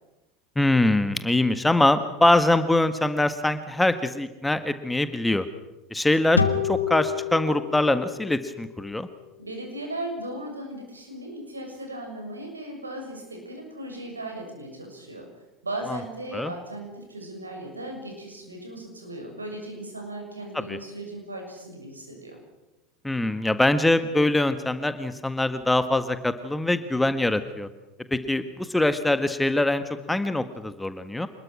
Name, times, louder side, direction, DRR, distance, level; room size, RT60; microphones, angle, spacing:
voice 1, 0.5-5.5 5.9-9.1 15.9-16.0 16.3-16.5 20.7-20.8 23.0-27.7 28.1-31.3, left 2 dB, 5° left, 11 dB, 1.6 m, -23 dB
sound 1, 6.3-9.7, left 6 dB, 85° left, 1.5 m, -29 dB
voice 2, 9.4-15.3 15.6-22.4, right 1 dB, 85° right, 2 dB, 6.9 m, -37 dB
27.0 x 21.0 x 6.3 m, 1.0 s
figure-of-eight pair, 75°, 0 cm